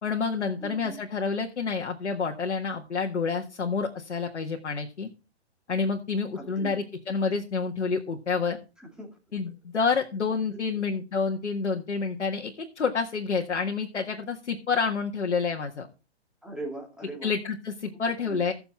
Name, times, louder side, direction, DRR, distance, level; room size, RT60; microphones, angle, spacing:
voice 1, 0.0-5.1 5.7-8.6 9.3-15.9 17.2-18.5, left 5 dB, 90° left, 1 dB, 1.8 m, -28 dB
voice 2, 0.6-1.0 6.4-6.8 8.8-9.1 16.4-17.3 18.3-18.4, right 2 dB, ahead, -1 dB, 2.6 m, -39 dB
17.0 x 6.9 x 4.4 m, 0.31 s
hypercardioid pair, 140°, 34 cm